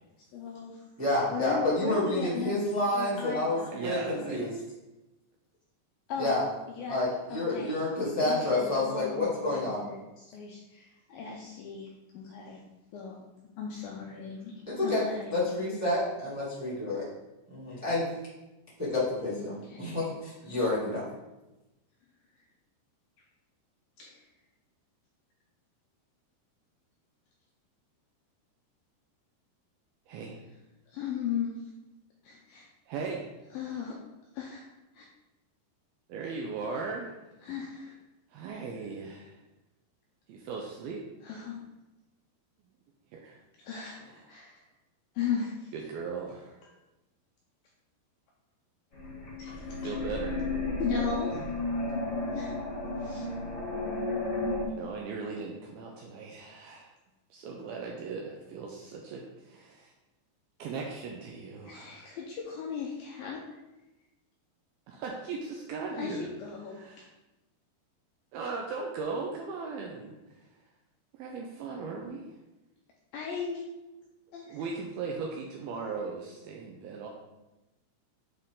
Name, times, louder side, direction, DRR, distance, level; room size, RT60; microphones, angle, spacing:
voice 1, 0.3-0.8 1.3-2.6 2.9-4.3 6.1-6.4 6.7-7.0 7.3-12.6 12.9-13.2 13.6-15.3 19.4-20.0 24.0-24.2 30.9-31.5 32.2-32.7 33.5-34.0 34.3-34.7 35.0-35.1 37.4-37.9 41.2-41.6 43.6-44.6 45.2-45.7 49.4-49.9 50.8-51.5 52.3-52.6 53.0-53.3 61.6-63.6 65.9-66.8 73.1-73.6 74.3-74.7, left 7 dB, 80° left, -2 dB, 2.1 m, -37 dB
voice 2, 1.0-4.5 6.2-6.4 6.9-9.8 14.7-15.0 15.3-17.1 17.5-18.1 18.8-21.1, left 2 dB, 15° right, -10 dB, 0.5 m, -29 dB
voice 3, 3.7-4.5 30.1-30.4 32.9-33.3 36.1-37.1 38.3-39.4 40.3-41.0 43.1-43.4 44.1-44.3 45.7-46.6 49.5-50.4 54.7-56.9 57.3-59.9 60.6-62.1 64.9-66.3 66.7-67.1 68.3-70.2 71.2-72.3 74.5-77.1, right 4 dB, 80° right, 0 dB, 2.2 m, -38 dB
sound 1, 48.9-54.6, left 2 dB, 45° left, 1.3 m, -33 dB
9.0 x 4.1 x 3.7 m, 1.0 s
omnidirectional pair, 5.0 m